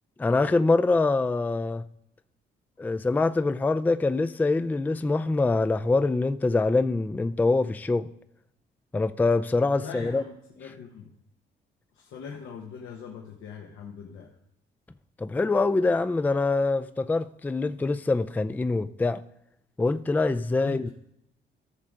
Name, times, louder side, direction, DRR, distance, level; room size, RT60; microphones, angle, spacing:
voice 1, 0.2-1.8 2.8-8.1 8.9-10.2 15.2-19.2 19.8-20.9, left 3 dB, 10° left, 0.3 m, -24 dB
voice 2, 9.8-11.1 11.9-14.3 20.6-20.8, left 6 dB, 85° left, 1.2 m, -41 dB
14.5 x 6.5 x 3.7 m
cardioid pair, 90°, 20 cm